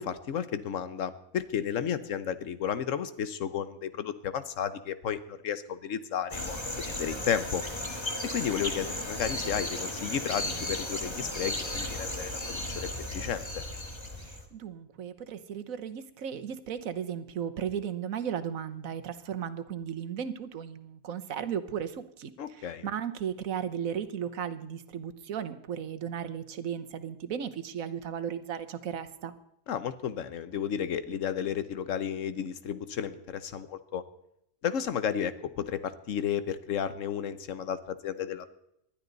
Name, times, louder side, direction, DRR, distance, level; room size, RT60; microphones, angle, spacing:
voice 1, 0.0-7.6 8.2-12.9 13.1-13.6 22.4-22.9 29.7-34.0 34.6-38.5, left 8 dB, 70° left, 13 dB, 1.2 m, -33 dB
sound 1, 6.3-14.4, left 1 dB, 20° left, 1.8 m, -35 dB
voice 2, 14.2-29.3, right 8 dB, 80° right, 10 dB, 1.4 m, -35 dB
20.0 x 12.0 x 4.0 m, 0.79 s
omnidirectional pair, 1.4 m